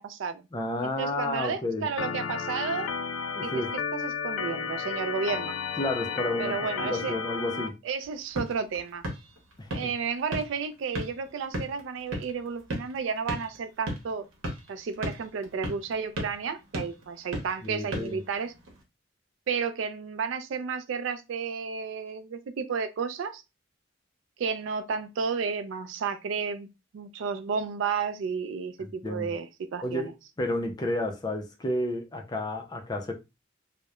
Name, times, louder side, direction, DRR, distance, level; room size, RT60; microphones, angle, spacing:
voice 1, 0.0-0.5 0.8-2.9 3.4-3.5 3.9-5.5 6.4-7.1 7.8-9.0 9.7-14.3 14.7-18.5 19.5-23.4 24.4-26.7 26.9-30.1, right 5 dB, 65° right, 0.3 m, -32 dB
voice 2, 0.5-1.9 3.4-3.7 5.8-6.5 6.8-7.7 9.6-9.9 17.6-18.2 28.8-29.3 29.8-30.1 30.4-33.1, left 1 dB, 20° left, 0.4 m, -31 dB
Organ, 2.0-7.7, left 6 dB, 90° left, 0.3 m, -32 dB
sound 1, 8.0-18.8, equal, 85° right, 0.8 m, -38 dB
2.9 x 2.0 x 2.2 m
head